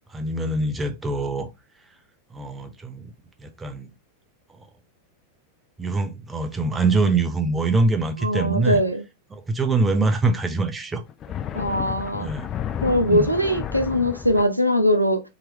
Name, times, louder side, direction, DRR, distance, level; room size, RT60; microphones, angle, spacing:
voice 1, 0.1-1.5 2.3-3.1 3.4-3.9 5.8-8.8 9.3-11.0 12.2-12.5 13.0-13.3, right 3 dB, 15° right, 0.6 m, -24 dB
voice 2, 8.2-9.0 11.5-12.3 12.8-15.2, equal, 90° right, 0.5 m, -21 dB
sound 1, 11.1-14.4, left 9 dB, 30° left, 0.5 m, -32 dB
3.7 x 2.9 x 2.9 m
figure-of-eight pair, 90°, 0 cm